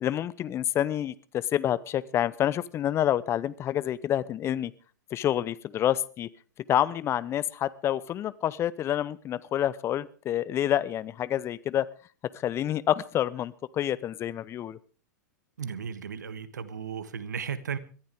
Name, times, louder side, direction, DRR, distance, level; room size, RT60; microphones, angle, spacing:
voice 1, 0.0-4.7 5.1-6.3 6.7-11.9 12.4-14.8, left 11 dB, 30° left, 19 dB, 0.7 m, -28 dB
voice 2, 15.6-17.8, right 7 dB, 75° right, 14 dB, 1.5 m, -35 dB
22.0 x 14.5 x 3.6 m, 0.38 s
figure-of-eight pair, 100°, 10 cm